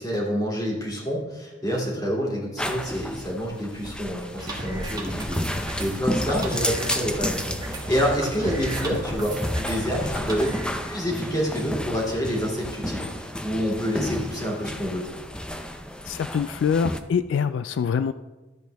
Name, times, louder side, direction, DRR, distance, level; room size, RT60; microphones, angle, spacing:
voice 1, 0.0-10.5 10.8-15.0, equal, 20° left, -3 dB, 2.6 m, -28 dB
sound 1, 2.6-17.0, left 1 dB, 5° left, 0.5 m, -32 dB
sound 2, 4.4-10.7, right 1 dB, 20° right, 1.3 m, -34 dB
voice 2, 16.0-18.1, left 6 dB, 85° left, 12 dB, 0.3 m, -24 dB
12.5 x 7.7 x 3.4 m, 1.2 s
head